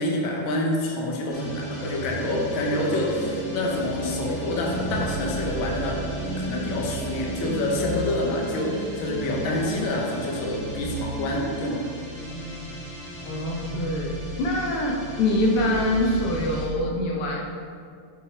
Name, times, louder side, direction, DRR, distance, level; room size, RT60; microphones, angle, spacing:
voice 1, 0.0-11.9, left 1 dB, 70° left, -1 dB, 1.7 m, -27 dB
sound 1, 1.3-16.7, right 2 dB, 40° left, 1.3 m, -35 dB
sound 2, 2.4-11.8, right 2 dB, 60° right, 1.0 m, -36 dB
voice 2, 13.3-14.1 14.4-17.4, left 1 dB, 90° left, -1 dB, 1.8 m, -24 dB
6.0 x 4.8 x 4.8 m, 2.3 s
omnidirectional pair, 2.4 m